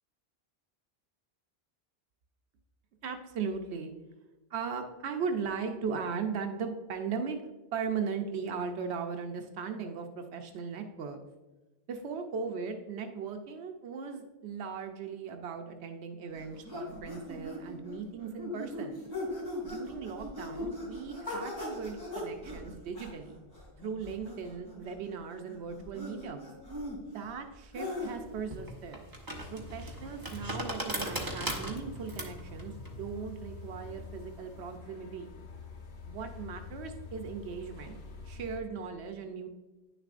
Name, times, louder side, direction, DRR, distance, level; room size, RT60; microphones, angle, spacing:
voice 1, 3.0-3.9 4.5-7.4 7.7-11.2 11.9-19.0 19.6-23.4 23.8-26.4 27.1-29.0 29.5-35.3 36.1-38.0 38.2-39.5, right 5 dB, 90° right, 5 dB, 0.9 m, -38 dB
sound 1, 16.3-28.3, left 1 dB, 40° left, 2.7 m, -40 dB
sound 2, 28.0-34.7, right 1 dB, 20° right, 0.9 m, -39 dB
sound 3, 29.3-38.6, left 4 dB, 85° left, 1.2 m, -47 dB
9.7 x 6.7 x 2.5 m, 1.1 s
omnidirectional pair, 1.1 m